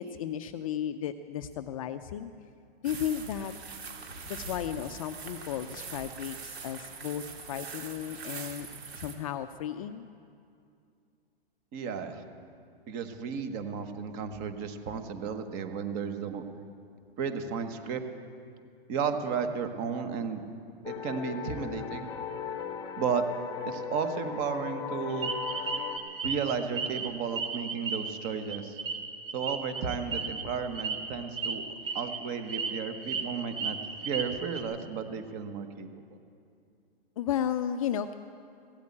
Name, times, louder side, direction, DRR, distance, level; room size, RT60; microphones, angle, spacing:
voice 1, 0.0-2.3 2.8-3.5 4.2-7.2 7.5-8.7 8.9-10.1 37.2-38.1, left 9 dB, 35° left, 10 dB, 0.4 m, -34 dB
sound 1, 2.8-9.1, right 4 dB, 85° right, 2.6 m, -42 dB
voice 2, 11.7-12.2 12.9-16.4 17.2-18.0 18.9-20.4 20.9-22.1 23.0-23.2 23.7-25.3 26.2-28.8 29.3-31.6 31.9-33.8 34.0-35.9, right 6 dB, 30° right, 8 dB, 1.2 m, -33 dB
sound 2, 20.8-26.0, left 7 dB, 15° left, 0.9 m, -37 dB
sound 3, 25.2-27.1 27.3-30.4 30.7-31.0 31.3-31.5 31.9-32.2 32.5-33.2 33.5-34.6, right 5 dB, 60° right, 2.0 m, -34 dB
16.0 x 8.5 x 8.5 m, 2.4 s
hypercardioid pair, 150°, 31 cm